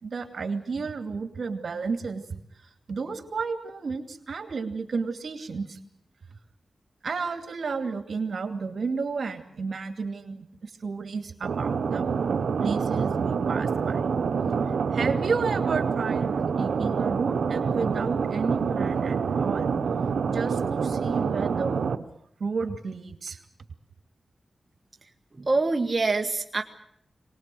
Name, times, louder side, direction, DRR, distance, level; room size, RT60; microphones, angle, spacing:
voice 1, 0.0-2.2 2.9-5.8 7.0-12.0 12.6-14.0 14.9-19.7 20.3-22.1 22.4-23.4, right 4 dB, 70° right, 7 dB, 2.6 m, -32 dB
sound 1, 11.4-21.9, right 6 dB, 90° right, 1.0 m, -26 dB
voice 2, 25.4-26.6, right 3 dB, 35° right, 3 dB, 1.5 m, -25 dB
24.0 x 20.0 x 7.8 m, 0.70 s
wide cardioid pair, 90°, 0 cm